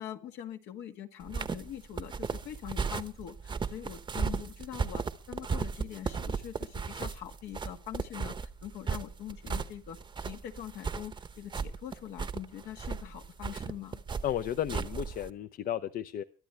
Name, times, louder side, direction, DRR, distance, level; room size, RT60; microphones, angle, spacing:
voice 1, 0.0-14.0, left 11 dB, 80° left, 5 dB, 1.7 m, -43 dB
sound 1, 1.2-15.3, right 5 dB, 30° right, 0.9 m, -36 dB
voice 2, 14.2-16.2, left 11 dB, 55° left, 11 dB, 0.7 m, -33 dB
22.5 x 12.0 x 3.3 m, 0.35 s
cardioid pair, 110°, 17 cm